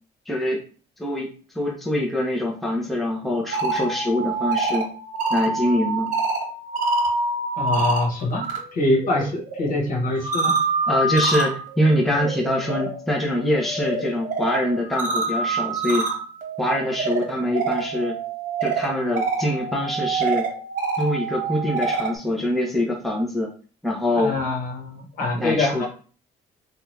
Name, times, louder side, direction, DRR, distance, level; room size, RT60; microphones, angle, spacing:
voice 1, 0.3-0.6 1.0-1.3 1.5-4.9 5.3-6.1 10.9-16.1 16.6-18.2 18.6-20.5 21.0-23.5 23.8-24.3 25.3-25.9, left 1 dB, ahead, -2 dB, 0.7 m, -24 dB
sound 1, 3.3-8.6 8.9-22.2, right 3 dB, 45° right, 1.1 m, -27 dB
voice 2, 7.6-8.4 8.7-10.6 24.1-25.9, left 2 dB, 55° left, -1 dB, 1.1 m, -24 dB
2.7 x 2.3 x 3.2 m, 0.39 s
cardioid pair, 110°, 17 cm